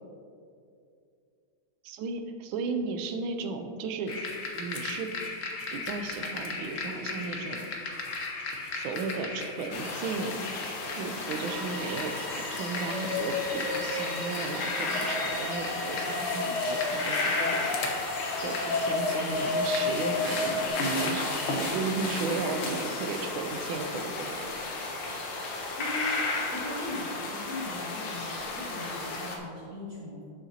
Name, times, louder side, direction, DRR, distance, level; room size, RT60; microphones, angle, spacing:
voice 1, 1.8-4.2 4.5-5.1 5.7-7.7 8.7-10.5 11.0-18.1 18.4-24.6, right 4 dB, 75° right, 6 dB, 1.4 m, -35 dB
sound 1, 4.1-20.7, left 3 dB, 55° left, 0.9 m, -34 dB
sound 2, 9.7-29.4, left 2 dB, 70° left, 1.8 m, -33 dB
sound 3, 11.0-23.7, equal, ahead, 0.6 m, -43 dB
voice 2, 25.8-30.3, left 1 dB, 50° right, -7 dB, 1.5 m, -39 dB
11.0 x 6.5 x 2.8 m, 2.4 s
omnidirectional pair, 2.4 m